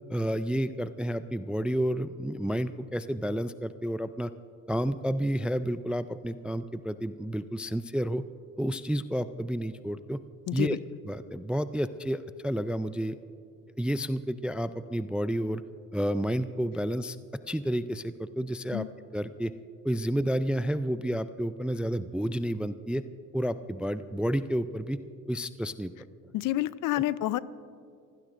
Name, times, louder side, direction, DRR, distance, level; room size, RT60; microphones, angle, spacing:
voice 1, 0.1-4.3 4.7-8.2 8.6-10.2 10.5-10.8 11.1-13.2 13.8-15.6 15.9-17.2 17.5-18.8 19.1-19.5 19.8-23.0 23.3-25.0 25.3-25.9, equal, 5° right, 13 dB, 0.3 m, -30 dB
voice 2, 10.5-10.8 18.7-18.9 26.3-27.4, left 15 dB, 55° left, 18 dB, 0.6 m, -28 dB
29.5 x 16.0 x 2.6 m, 2.4 s
supercardioid pair, 80°, 37 cm